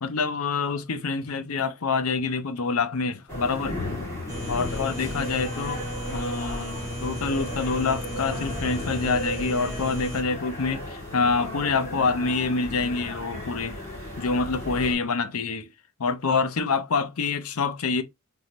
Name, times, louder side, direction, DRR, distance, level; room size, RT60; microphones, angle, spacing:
voice 1, 0.0-4.0 4.5-5.8 6.1-13.8 14.2-15.7 16.0-18.0, left 4 dB, 85° left, 0.7 m, -26 dB
sound 1, 3.3-14.9, left 1 dB, 15° left, 2.5 m, -35 dB
sound 2, 4.3-10.2, equal, 15° right, 1.6 m, -35 dB
3.8 x 3.8 x 3.0 m
head